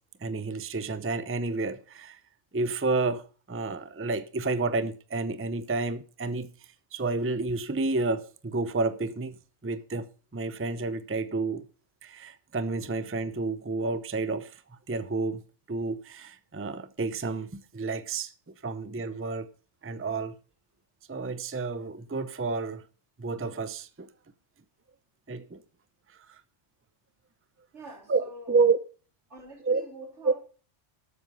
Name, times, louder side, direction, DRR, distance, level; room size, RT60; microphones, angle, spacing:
voice 1, 0.2-2.2 2.5-6.5 6.9-9.4 9.6-10.1 10.3-11.6 12.0-14.6 14.9-15.4 15.7-18.3 18.6-19.5 19.8-20.3 21.1-22.8 23.2-24.1 25.3-25.6 26.3-26.4 28.1-28.8 29.6-29.8 30.2-30.3, right 3 dB, 15° right, 0.6 m, -30 dB
voice 2, 27.7-28.5 29.3-30.4, right 1 dB, 85° right, 3.6 m, -45 dB
13.0 x 7.9 x 5.4 m
omnidirectional pair, 1.2 m